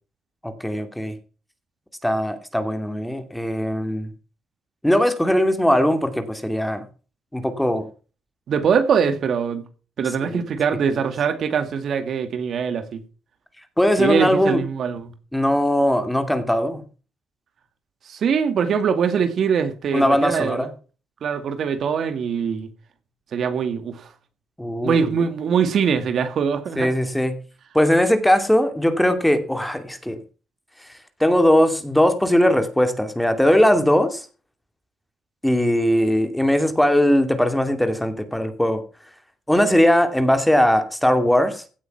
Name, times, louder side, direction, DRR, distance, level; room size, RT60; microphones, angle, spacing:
voice 1, 0.4-1.1 2.0-4.1 4.8-6.8 7.3-7.9 10.3-10.4 10.9-11.1 13.8-14.6 15.3-16.8 19.9-20.7 24.6-25.1 26.8-27.4 27.7-30.2 31.2-34.2 35.4-38.8 39.5-41.6, left 1 dB, 5° left, 2.5 m, -19 dB
voice 2, 8.5-9.6 10.0-13.0 14.0-15.1 18.1-20.7 21.2-22.7 23.3-24.1 24.8-26.9, right 6 dB, 60° right, 2.1 m, -22 dB
16.5 x 8.1 x 5.9 m
cardioid pair, 90°, 0 cm